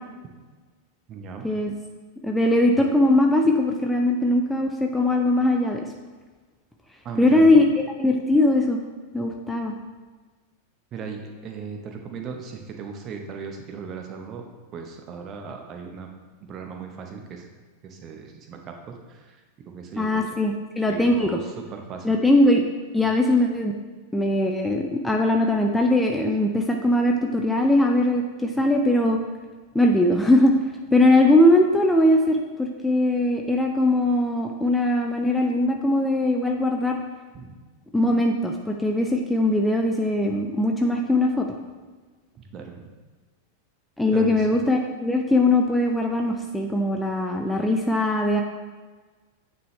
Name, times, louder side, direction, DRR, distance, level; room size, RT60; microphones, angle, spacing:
voice 1, 1.1-1.5 7.0-7.6 10.9-14.4 14.7-16.1 16.5-17.5 17.8-20.2 20.9-22.2 37.3-37.6 42.4-42.9 44.1-44.6, right 5 dB, 30° right, 3 dB, 0.8 m, -37 dB
voice 2, 2.2-5.8 7.2-7.7 8.0-8.8 9.1-9.7 20.0-21.3 22.0-22.6 22.9-23.7 24.1-29.2 29.7-30.5 30.9-37.0 37.9-41.5 44.0-48.4, left 1 dB, 5° left, 1 dB, 0.4 m, -20 dB
9.2 x 3.4 x 3.2 m, 1.3 s
figure-of-eight pair, 90°, 0 cm